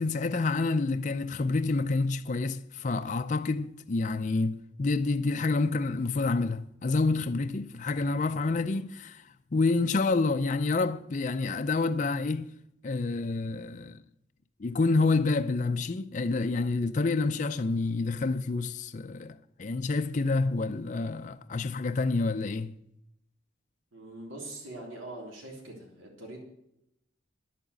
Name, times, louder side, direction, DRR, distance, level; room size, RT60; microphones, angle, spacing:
voice 1, 0.0-9.2 9.5-12.5 12.8-14.0 14.6-22.8, left 3 dB, 40° left, 0.4 m, -28 dB
voice 2, 23.9-26.4, right 2 dB, 90° right, 3.5 m, -43 dB
11.0 x 8.6 x 8.1 m
head